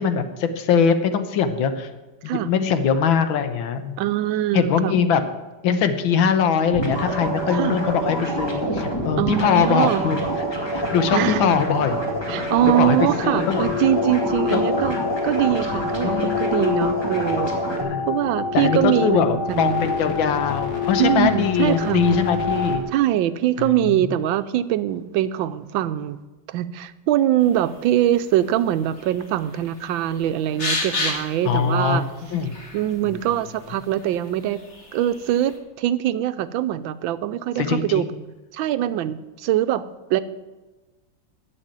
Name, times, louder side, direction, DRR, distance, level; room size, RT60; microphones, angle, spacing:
voice 1, 0.0-1.9 2.2-4.0 4.5-5.3 5.6-10.2 10.7-12.0 12.4-13.8 14.5-14.8 16.0-16.4 17.8-18.1 18.5-22.9 23.6-23.7 31.5-32.5 37.6-38.1, left 6 dB, 85° left, 9 dB, 1.7 m, -22 dB
voice 2, 4.0-5.0 7.5-7.8 9.2-10.0 11.1-11.5 12.3-15.0 15.2-17.5 18.1-19.8 21.0-22.0 22.9-26.2 26.5-32.0 32.7-34.6 34.9-38.1 38.5-40.2, right 12 dB, 85° right, 13 dB, 1.4 m, -23 dB
sound 1, 6.6-22.8, left 5 dB, 55° left, 2.4 m, -29 dB
sound 2, 6.7-17.8, right 1 dB, 15° left, 1.9 m, -27 dB
sound 3, 27.4-35.6, left 2 dB, 35° left, 2.1 m, -34 dB
11.0 x 7.1 x 8.9 m, 1.2 s
omnidirectional pair, 2.1 m